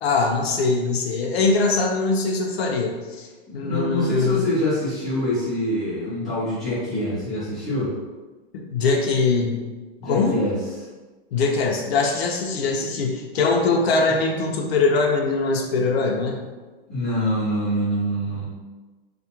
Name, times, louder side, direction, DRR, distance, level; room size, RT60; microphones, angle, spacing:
voice 1, 0.0-3.3 3.5-4.4 8.5-9.6 10.0-10.4 11.3-16.4, left 3 dB, 80° left, 1 dB, 0.6 m, -22 dB
voice 2, 3.5-7.9 10.0-10.5 16.9-18.5, left 1 dB, ahead, -16 dB, 0.7 m, -25 dB
2.4 x 2.1 x 2.9 m, 1.3 s
supercardioid pair, 175°, 31 cm